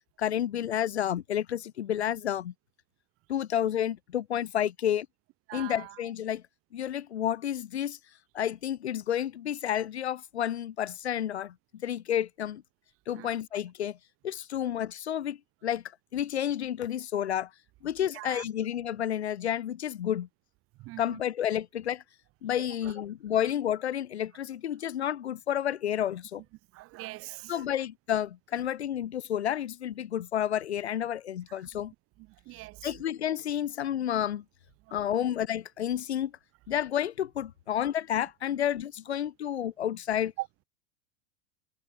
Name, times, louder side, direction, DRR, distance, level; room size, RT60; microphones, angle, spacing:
voice 1, 0.2-2.5 3.3-5.1 5.5-6.4 6.7-8.0 8.3-11.5 11.8-12.6 13.1-14.0 14.2-15.8 16.1-17.5 17.8-20.3 21.0-22.0 22.4-26.4 27.5-31.9 32.8-34.4 34.9-36.3 36.7-40.3, left 10 dB, 80° left, 0.6 m, -30 dB
voice 2, 5.5-6.0 13.1-13.3 18.1-18.4 20.8-21.2 22.6-22.9 26.7-27.7 32.2-33.0 34.9-35.0 40.4-40.5, right 20 dB, 45° right, 2.3 m, -42 dB
figure-of-eight pair, 80°, 33 cm